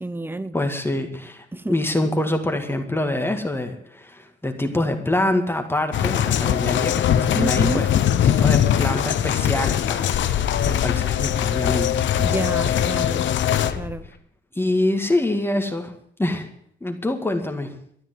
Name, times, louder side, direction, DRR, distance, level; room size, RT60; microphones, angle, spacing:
voice 1, 0.0-0.5 1.5-1.8 7.4-7.9 12.2-13.3 13.7-14.1, right 2 dB, 10° right, 0.9 m, -29 dB
voice 2, 0.5-7.9 8.2-10.2 10.7-11.9 14.5-15.9 16.2-16.5 16.8-17.8, left 1 dB, 10° left, 2.0 m, -25 dB
sound 1, 5.9-13.7, left 10 dB, 70° left, 1.0 m, -21 dB
sound 2, 6.2-9.2 9.6-13.2 13.6-14.2, left 7 dB, 55° left, 1.2 m, -36 dB
13.0 x 9.2 x 9.4 m
cardioid pair, 90°, 20 cm